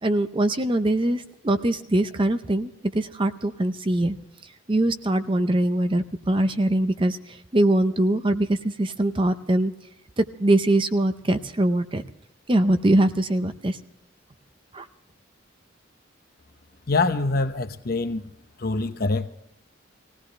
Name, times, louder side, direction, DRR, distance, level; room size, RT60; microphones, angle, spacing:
voice 1, 0.0-4.2 4.7-9.7 10.2-12.0 12.5-13.8 14.7-14.9, right 1 dB, 25° right, 0.6 m, -22 dB
voice 2, 16.9-18.2 18.6-19.3, left 3 dB, 50° left, 0.8 m, -24 dB
20.0 x 17.0 x 3.3 m
head